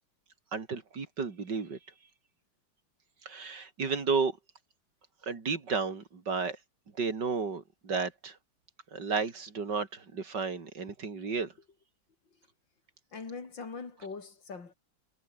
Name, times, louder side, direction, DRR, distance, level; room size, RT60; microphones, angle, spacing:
voice 1, 0.5-1.8 3.3-4.4 5.3-6.6 7.0-8.4 8.9-11.5, right 5 dB, 65° right, 3.5 m, -32 dB
voice 2, 13.1-14.7, left 4 dB, 75° left, 3.9 m, -42 dB
omnidirectional pair, 2.1 m